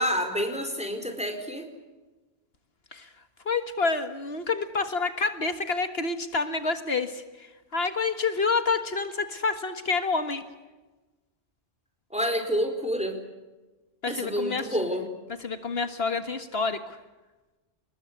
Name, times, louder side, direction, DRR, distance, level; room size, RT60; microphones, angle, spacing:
voice 1, 0.0-1.7 12.1-13.2 14.1-15.1, equal, 5° right, 6 dB, 4.6 m, -28 dB
voice 2, 3.5-10.4 14.0-14.7 15.4-17.0, left 4 dB, 70° left, 9 dB, 1.9 m, -28 dB
28.5 x 21.0 x 8.3 m, 1.2 s
omnidirectional pair, 1.1 m